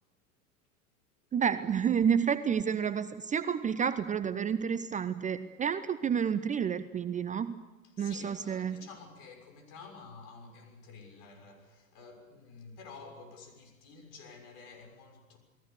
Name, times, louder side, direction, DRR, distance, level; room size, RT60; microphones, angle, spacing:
voice 1, 1.3-7.5 8.0-8.8, right 7 dB, 20° right, 0.7 m, -30 dB
voice 2, 7.8-15.4, left 4 dB, 50° left, 6.5 m, -51 dB
29.0 x 20.0 x 6.7 m
figure-of-eight pair, 80°, 41 cm